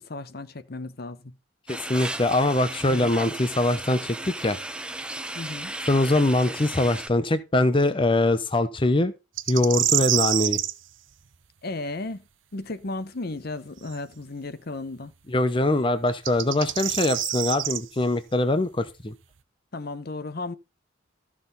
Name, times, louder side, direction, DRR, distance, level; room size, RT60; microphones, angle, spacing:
voice 1, 0.0-1.4 2.9-3.1 5.3-5.7 11.6-12.2 12.5-15.1 19.7-20.5, left 2 dB, 55° left, 0.9 m, -34 dB
voice 2, 1.7-4.6 5.9-9.1 9.5-10.6 15.3-19.1, left 2 dB, 25° left, 0.8 m, -23 dB
sound 1, 1.7-7.1, right 1 dB, 5° right, 0.8 m, -35 dB
sound 2, 9.4-10.7 13.9-14.0 16.1-17.8, right 13 dB, 90° right, 0.8 m, -26 dB
14.0 x 6.1 x 4.0 m
head